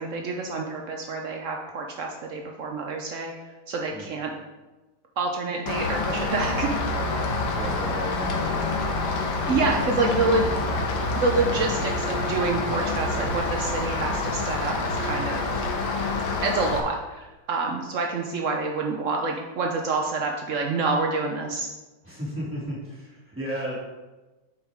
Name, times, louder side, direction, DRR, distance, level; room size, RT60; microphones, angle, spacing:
voice 1, 0.0-3.3 3.7-4.3 5.2-6.7 9.5-10.5 11.2-15.7 16.4-21.7, right 3 dB, 75° right, 1 dB, 0.7 m, -27 dB
Rain, 5.7-16.8, left 3 dB, 65° left, 1.7 m, -27 dB
voice 2, 7.5-8.6 22.0-23.7, equal, 5° right, -7 dB, 2.6 m, -34 dB
Wind instrument woodwind instrument, 11.7-16.6, equal, 45° left, 1.3 m, -40 dB
8.5 x 7.2 x 3.6 m, 1.1 s
omnidirectional pair, 2.4 m